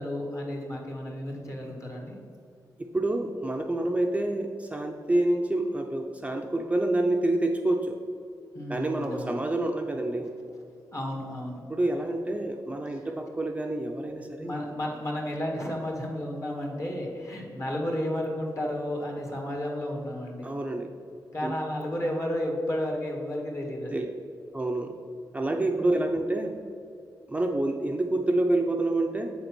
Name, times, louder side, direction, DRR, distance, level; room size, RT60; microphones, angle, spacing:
voice 1, 0.0-2.2 8.5-9.4 10.9-11.6 12.9-13.0 14.4-20.5 21.3-24.0 25.5-25.9, left 1 dB, 40° left, 0 dB, 1.8 m, -32 dB
voice 2, 2.8-8.0 8.7-10.3 11.7-14.7 20.4-20.9 21.4-21.6 23.9-24.1 24.5-24.9 25.3-26.5 27.3-29.3, right 2 dB, 15° right, 3 dB, 0.5 m, -27 dB
7.2 x 4.0 x 6.0 m, 2.5 s
cardioid pair, 75°, 8 cm